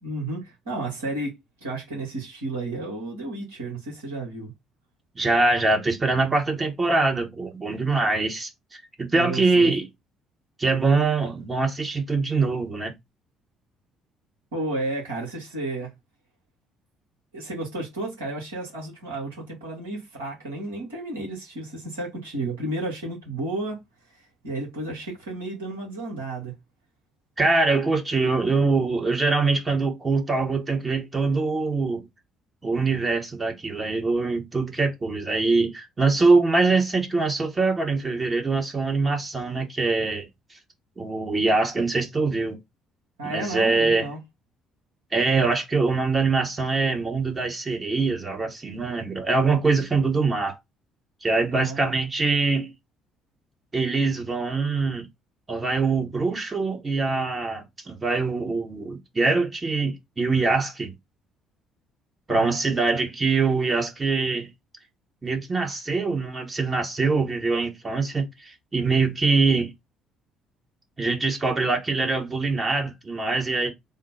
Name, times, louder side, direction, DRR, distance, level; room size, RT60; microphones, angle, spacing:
voice 1, 0.0-1.3 1.6-4.5 9.1-9.7 14.5-15.9 17.3-23.8 24.4-26.5 43.2-44.2 51.5-51.8 62.3-62.5, right 2 dB, 75° right, 1.7 m, -32 dB
voice 2, 5.2-9.9 10.6-12.9 27.4-32.0 32.6-40.3 41.0-42.6 43.2-44.1 45.1-50.6 51.2-52.7 53.7-55.1 55.5-60.9 62.3-64.5 65.2-69.7 71.0-73.7, right 3 dB, 25° right, 1.1 m, -23 dB
3.7 x 2.2 x 4.2 m
figure-of-eight pair, 50°, 0 cm